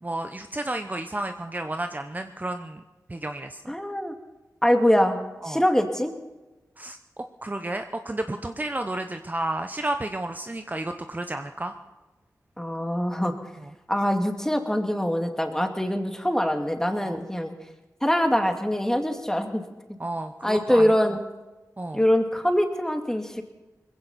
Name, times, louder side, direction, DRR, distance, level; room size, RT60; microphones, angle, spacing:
voice 1, 0.0-2.8 3.1-3.7 5.4-5.6 6.8-11.7 13.6-13.7 16.9-17.2 20.0-21.2 21.8-22.0, right 1 dB, 25° right, 7 dB, 0.8 m, -32 dB
voice 2, 3.7-4.1 4.6-6.1 12.6-13.3 13.9-17.5 18.0-19.6 20.4-21.2 21.9-23.4, equal, 10° left, 5 dB, 2.0 m, -23 dB
20.5 x 15.5 x 4.2 m, 1.1 s
cardioid pair, 50°, 6 cm